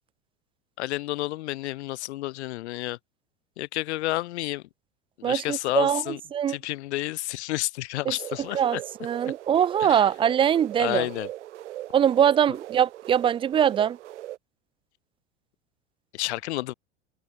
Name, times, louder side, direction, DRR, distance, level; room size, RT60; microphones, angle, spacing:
voice 1, 0.8-3.0 3.6-4.6 5.2-6.2 6.5-8.8 9.8-10.1 10.8-11.3 16.1-16.7, left 18 dB, 65° left, 1.4 m, -30 dB
voice 2, 5.2-6.0 6.3-6.6 8.1-8.2 8.5-11.1 11.9-14.0, right 9 dB, 15° right, 0.3 m, -22 dB
sound 1, 8.2-14.4, right 14 dB, 75° right, 1.4 m, -39 dB
hypercardioid pair, 85°, 36 cm